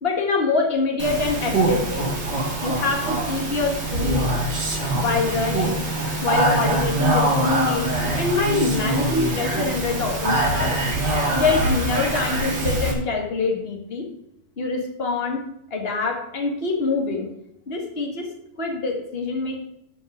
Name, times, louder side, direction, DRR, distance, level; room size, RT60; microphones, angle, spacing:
voice 1, 0.0-2.1 2.6-4.3 4.9-5.8 6.2-7.9 8.1-10.8 11.3-14.1 14.6-15.4 15.7-17.3 17.7-18.3 18.6-19.6, left 4 dB, 25° left, 1 dB, 2.1 m, -25 dB
Speech, 1.0-12.9, right 2 dB, 50° right, 2.6 m, -23 dB
12.5 x 5.9 x 5.2 m, 0.77 s
omnidirectional pair, 2.4 m